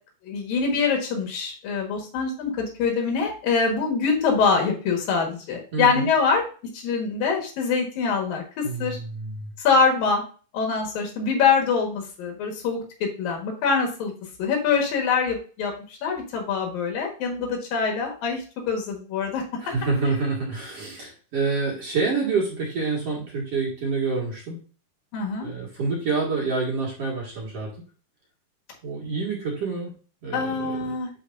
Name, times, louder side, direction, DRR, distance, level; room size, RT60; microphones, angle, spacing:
voice 1, 0.2-6.4 6.7-9.0 9.6-10.2 10.5-14.1 14.4-19.4 25.1-25.5 30.3-31.1, left 5 dB, 70° left, 1 dB, 3.2 m, -24 dB
voice 2, 5.7-6.1 8.6-9.5 19.6-24.6 25.4-27.7 28.8-29.9 30.2-31.0, right 4 dB, 45° right, -3 dB, 2.5 m, -27 dB
11.0 x 4.7 x 2.6 m, 0.38 s
omnidirectional pair, 4.4 m